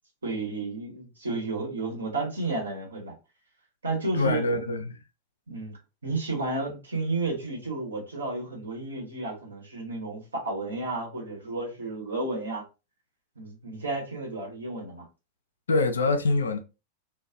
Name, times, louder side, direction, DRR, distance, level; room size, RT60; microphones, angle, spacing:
voice 1, 0.2-3.1 3.8-4.4 5.5-12.6 13.4-15.0, right 3 dB, 75° right, 1.0 m, -32 dB
voice 2, 4.1-5.0 15.7-16.6, left 3 dB, 70° left, 0.4 m, -25 dB
2.3 x 2.2 x 2.4 m
figure-of-eight pair, 90°, 0 cm